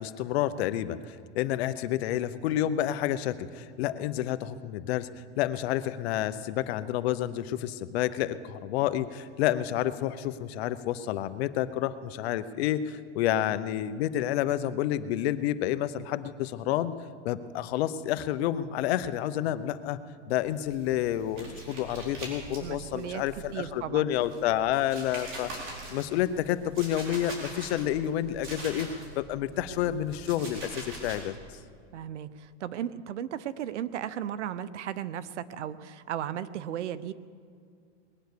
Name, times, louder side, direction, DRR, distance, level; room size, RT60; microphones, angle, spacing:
voice 1, 0.0-5.1 5.4-16.9 17.2-20.0 20.3-28.9 29.2-31.4, left 12 dB, 65° left, 13 dB, 0.9 m, -29 dB
sound 1, 20.5-23.8 24.1-29.2 29.5-31.2, right 2 dB, 35° right, 4.4 m, -43 dB
voice 2, 22.6-23.2 23.5-24.1 31.9-37.1, right 10 dB, 85° right, 16 dB, 0.8 m, -35 dB
20.5 x 9.3 x 6.8 m, 2.2 s
supercardioid pair, 130°, 34 cm